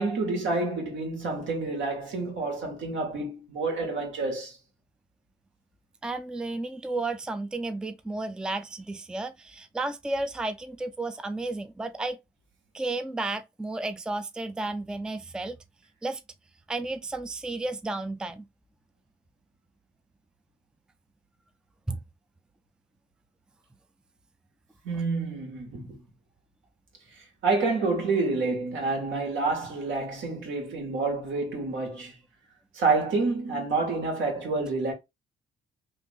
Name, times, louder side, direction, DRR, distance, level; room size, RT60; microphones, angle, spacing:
voice 1, 0.0-4.6 24.8-26.0 27.4-32.2 32.7-34.9, right 3 dB, 75° right, 1.6 m, -28 dB
voice 2, 6.0-12.2 12.7-15.6 16.0-16.2 16.7-18.4 21.9-22.0, right 2 dB, 5° right, 0.4 m, -32 dB
3.3 x 2.5 x 3.5 m
cardioid pair, 90°, 20 cm